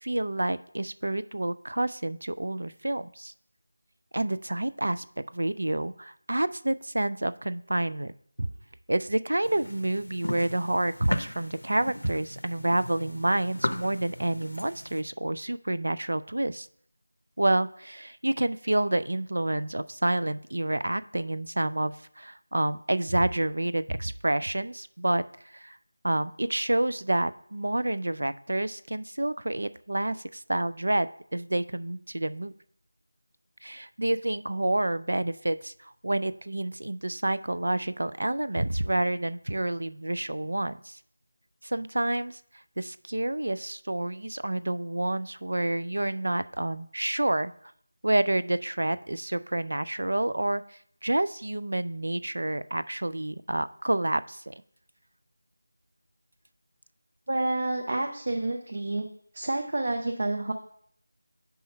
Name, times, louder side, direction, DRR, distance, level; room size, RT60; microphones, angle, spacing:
voice 1, 0.0-3.3 4.1-5.0 5.3-8.1 8.4-8.5 8.9-16.7 17.4-25.2 25.5-25.8 26.0-32.5 33.6-41.0 41.6-42.4 42.8-47.5 48.0-54.5, right 1 dB, 80° right, 14 dB, 0.4 m, -28 dB
sound 1, 9.4-15.0, left 1 dB, 90° left, 0.7 m, -36 dB
voice 2, 57.3-59.1 59.3-60.5, right 2 dB, 50° right, 3 dB, 0.7 m, -29 dB
5.5 x 4.3 x 5.4 m, 0.65 s
figure-of-eight pair, 175°, 0 cm